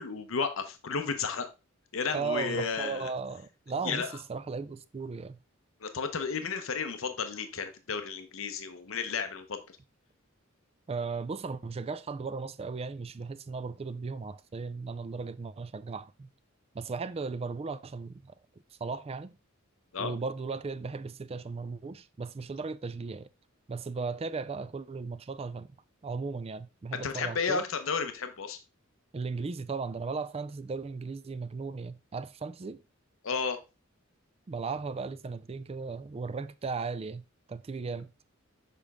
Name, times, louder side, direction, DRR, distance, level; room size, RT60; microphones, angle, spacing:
voice 1, 0.0-1.5 1.9-3.1 3.8-4.2 5.8-9.6 19.9-20.1 26.9-28.6 33.2-33.6 37.9-38.0, left 5 dB, 70° left, 0.8 m, -33 dB
voice 2, 2.1-5.4 10.9-16.3 16.7-18.2 18.8-19.3 20.0-23.3 23.7-25.7 26.0-27.6 29.1-32.8 34.5-37.2 37.5-38.1, right 4 dB, 30° right, 0.4 m, -36 dB
6.8 x 5.1 x 3.5 m
head